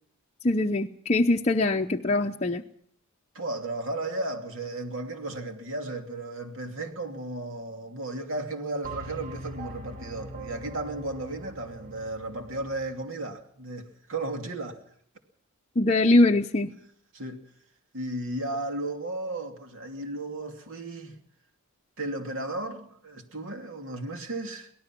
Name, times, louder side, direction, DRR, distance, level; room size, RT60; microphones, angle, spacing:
voice 1, 0.4-2.6 15.8-16.7, left 2 dB, 30° left, 0.7 m, -22 dB
voice 2, 3.3-14.8 17.1-17.5 17.9-21.2 22.0-24.7, right 2 dB, 65° right, 2.7 m, -34 dB
sound 1, 8.8-13.1, right 2 dB, 40° right, 2.2 m, -42 dB
24.0 x 18.0 x 6.0 m
head